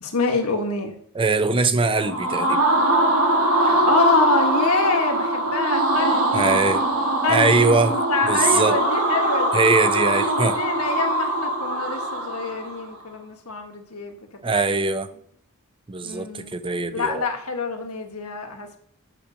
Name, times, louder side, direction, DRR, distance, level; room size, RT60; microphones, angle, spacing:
voice 1, 0.0-0.9 3.6-6.7 7.2-9.5 9.9-14.2 14.5-14.8 16.0-16.5 16.9-18.8, left 3 dB, 75° left, 1.6 m, -26 dB
voice 2, 1.1-2.6 6.3-6.8 7.3-8.0 8.3-8.8 9.5-10.6 14.4-15.1 15.9-17.3, right 3 dB, 25° right, 0.6 m, -21 dB
sound 1, 1.9-12.8, right 1 dB, 80° right, 1.9 m, -22 dB
9.8 x 5.1 x 6.3 m
head